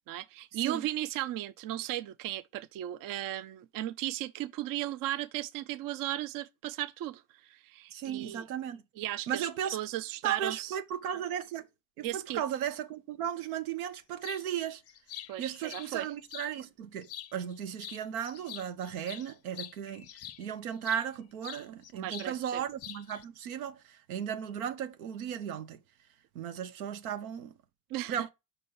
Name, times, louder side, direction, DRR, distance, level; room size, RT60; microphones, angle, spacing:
voice 1, 0.1-8.4 9.0-10.8 12.0-12.4 15.3-16.1 21.7-22.6 27.9-28.3, right 14 dB, 50° right, 0.6 m, -36 dB
voice 2, 7.9-8.8 9.3-9.8 10.2-11.6 12.0-14.8 15.4-20.1 20.4-25.8 26.3-27.5 28.1-28.3, right 9 dB, 85° right, 0.8 m, -36 dB
sound 1, 14.2-14.4 14.9-16.5 17.0-17.5 17.8-21.1 21.4-22.3 22.6-23.2, left 11 dB, 35° left, 0.5 m, -45 dB
5.4 x 4.2 x 5.4 m
hypercardioid pair, 65°, 42 cm